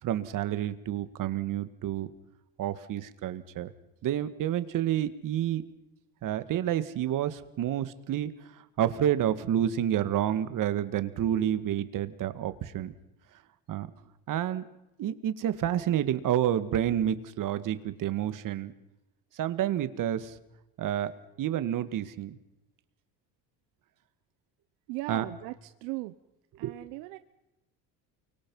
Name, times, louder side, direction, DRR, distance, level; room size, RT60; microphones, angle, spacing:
voice 1, 0.0-2.1 2.6-3.7 4.0-5.6 6.2-8.3 8.8-12.9 13.7-13.9 14.3-14.6 15.0-18.7 19.4-20.3 20.8-21.1 21.4-22.4 25.1-25.3 26.6-26.7, right 11 dB, 55° right, 13 dB, 2.0 m, -29 dB
voice 2, 24.9-26.1 26.6-27.2, right 20 dB, 80° right, 11 dB, 1.0 m, -38 dB
29.0 x 24.5 x 5.6 m, 0.92 s
supercardioid pair, 90°, 38 cm